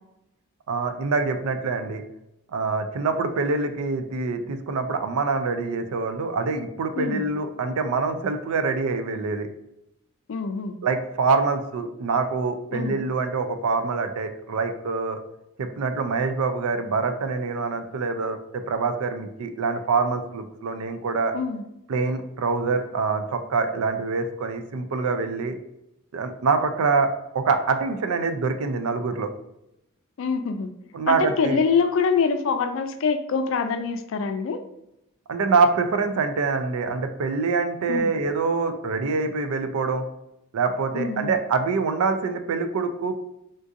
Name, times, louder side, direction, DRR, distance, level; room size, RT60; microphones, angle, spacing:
voice 1, 0.7-2.0 2.5-9.5 10.8-15.2 15.6-21.4 21.9-25.6 26.1-29.3 30.9-31.6 35.3-40.0 40.5-43.1, right 4 dB, 90° right, 8 dB, 0.4 m, -25 dB
voice 2, 10.3-10.8 12.7-13.0 21.3-21.6 30.2-30.7 31.1-34.6 37.9-38.1 40.9-41.4, left 5 dB, 65° left, 8 dB, 0.3 m, -25 dB
3.7 x 2.4 x 2.6 m, 0.84 s
head